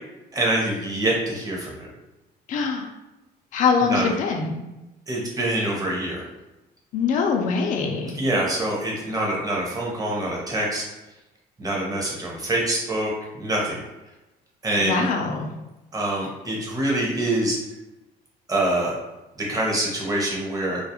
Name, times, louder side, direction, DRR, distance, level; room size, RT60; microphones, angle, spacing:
voice 1, 0.3-1.9 3.8-4.1 5.1-6.3 8.1-10.8 11.6-13.1 13.4-13.8 14.6-15.1 15.9-17.6 18.5-19.0 19.4-20.8, right 1 dB, 20° right, -3 dB, 0.7 m, -25 dB
voice 2, 2.5-2.9 3.5-4.6 6.9-8.2 14.8-15.6, left 5 dB, 50° left, 3 dB, 0.4 m, -23 dB
2.3 x 2.0 x 2.8 m, 1.0 s
cardioid pair, 110°, 17 cm